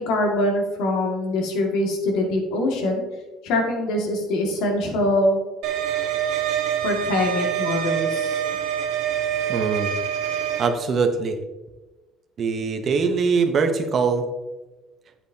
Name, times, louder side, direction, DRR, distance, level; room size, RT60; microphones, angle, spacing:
voice 1, 0.0-3.0 3.4-5.4 6.8-8.4, left 1 dB, 80° left, 2 dB, 2.0 m, -23 dB
sound 1, 5.6-10.7, right 8 dB, 85° right, 1.3 m, -25 dB
voice 2, 9.5-9.9 10.6-11.4 12.4-14.3, right 5 dB, 35° right, 7 dB, 0.8 m, -22 dB
8.6 x 8.3 x 2.8 m, 1.1 s
cardioid pair, 150°, 0 cm